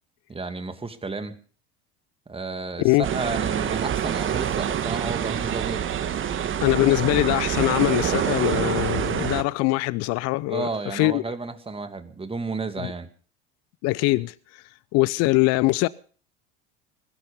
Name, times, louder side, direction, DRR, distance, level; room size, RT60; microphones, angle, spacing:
voice 1, 0.3-1.4 2.3-5.9 6.9-7.1 10.5-13.1, right 3 dB, 15° right, 2.4 m, -32 dB
sound 1, 3.0-9.4, right 9 dB, 40° right, 1.9 m, -26 dB
voice 2, 6.6-11.2 12.8-12.9 13.8-14.6 14.9-15.9, left 21 dB, 50° left, 0.7 m, -22 dB
21.5 x 11.5 x 5.3 m
hypercardioid pair, 75°, 32 cm